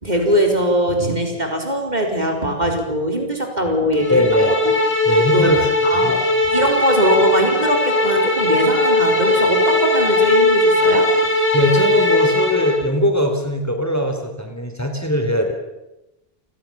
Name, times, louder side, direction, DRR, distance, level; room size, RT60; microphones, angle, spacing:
voice 1, 0.0-4.6 5.2-5.5 5.8-11.1, right 1 dB, 45° right, 3 dB, 4.6 m, -21 dB
sound 1, 4.0-12.8, left 2 dB, 65° left, 4.2 m, -18 dB
voice 2, 4.1-4.5 5.0-5.7 5.9-6.1 11.5-15.5, equal, 15° left, 5 dB, 3.4 m, -20 dB
30.0 x 20.0 x 7.2 m, 0.94 s
omnidirectional pair, 1.1 m